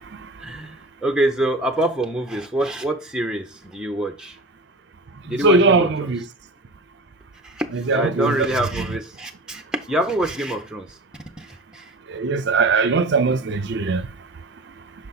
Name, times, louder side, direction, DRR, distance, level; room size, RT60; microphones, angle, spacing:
voice 1, 0.4-4.4 5.2-6.1 7.4-7.7 7.9-9.6 9.9-10.9 11.4-11.9, right 1 dB, 5° right, 0.6 m, -25 dB
voice 2, 5.4-6.2 7.7-8.4 12.1-14.0, right 3 dB, 55° right, 0.4 m, -19 dB
6.2 x 4.0 x 4.0 m
head